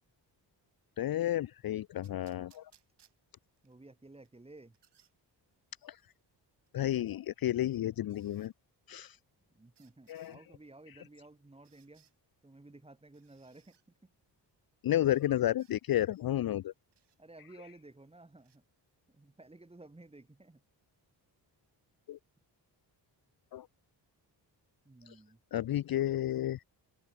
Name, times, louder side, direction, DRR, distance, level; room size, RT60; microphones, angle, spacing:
voice 1, 1.0-2.7 5.8-6.0 6.7-8.5 8.9-9.2 10.1-10.4 14.8-16.7 22.1-22.2 23.5-23.7 25.1-25.2 25.5-26.7, left 13 dB, 55° left, 0.6 m, -32 dB
sound 1, 2.0-3.7 4.2-5.1 6.7-6.8 8.1-8.5 9.7-10.4 11.6-12.1 13.1-13.8 15.0-15.3 15.6-15.7 16.9-17.2 18.4-18.6, right 9 dB, 65° right, 5.1 m, -69 dB
voice 2, 3.6-4.8 9.5-12.1 12.4-14.1 17.2-18.6 19.1-20.6 24.8-25.4, right 2 dB, 15° right, 4.1 m, -55 dB
open air
wide cardioid pair, 140°, 44 cm